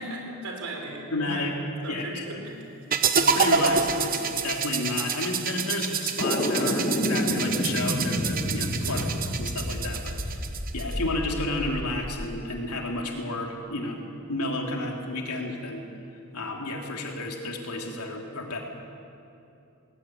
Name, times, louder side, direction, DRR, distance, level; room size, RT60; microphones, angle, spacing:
voice 1, 0.0-1.5 1.8-2.7 8.8-9.1, right 2 dB, 70° right, 2 dB, 4.4 m, -37 dB
voice 2, 1.1-1.5 1.9-2.4 3.1-9.1 9.4-10.4 10.7-14.0 14.3-15.8 16.3-18.6, left 2 dB, 85° left, 1 dB, 3.1 m, -31 dB
sound 1, 2.9-10.9, right 6 dB, 40° right, 1.0 m, -28 dB
sound 2, 6.2-12.3, left 1 dB, 35° left, 1.5 m, -29 dB
19.5 x 17.5 x 9.4 m, 2.7 s
head